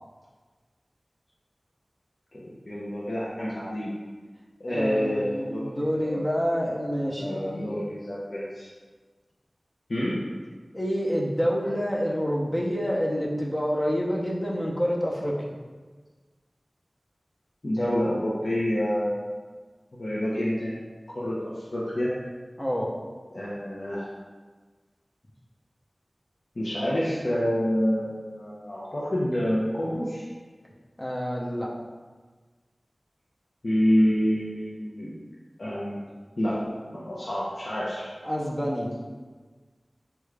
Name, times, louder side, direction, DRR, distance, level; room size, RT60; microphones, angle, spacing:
voice 1, 2.3-3.9 4.6-6.2 7.2-8.7 9.9-10.2 17.6-19.3 19.9-20.8 21.1-22.1 23.3-24.1 26.6-30.3 33.6-35.1 35.6-36.0 36.4-36.6 36.9-38.1, equal, 65° left, -8 dB, 0.6 m, -27 dB
voice 2, 4.7-7.7 10.7-15.4 22.6-22.9 31.0-31.7 38.2-38.9, equal, 20° left, -3 dB, 0.6 m, -27 dB
3.6 x 2.3 x 3.2 m, 1.4 s
wide cardioid pair, 55°, 0 cm